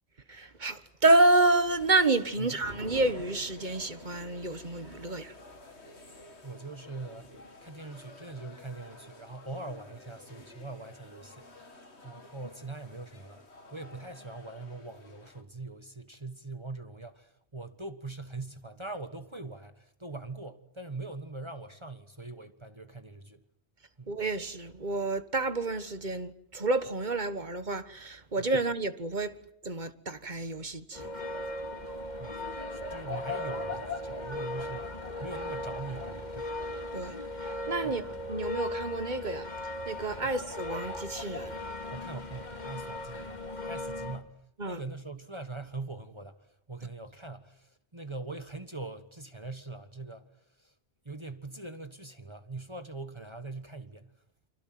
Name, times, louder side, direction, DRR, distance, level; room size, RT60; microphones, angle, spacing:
voice 1, 0.3-5.3 24.1-29.3 29.6-31.1 36.9-41.5 44.6-44.8, right 2 dB, 40° right, 1.6 m, -29 dB
sound 1, 1.2-15.4, left 3 dB, 75° left, 2.9 m, -53 dB
sound 2, 2.0-9.0 9.3-9.4 9.7-10.2, right 3 dB, 65° right, 2.6 m, -52 dB
voice 2, 6.4-7.3 7.6-11.5 12.0-13.4 13.7-23.4 24.0-24.2 28.4-28.5 32.2-36.6 37.8-38.1 41.9-43.4 43.7-50.3 50.6-50.7 51.0-54.1, right 3 dB, 25° right, 1.4 m, -42 dB
sound 3, 30.9-44.2, left 1 dB, 40° left, 2.5 m, -37 dB
30.0 x 25.5 x 7.7 m
omnidirectional pair, 1.2 m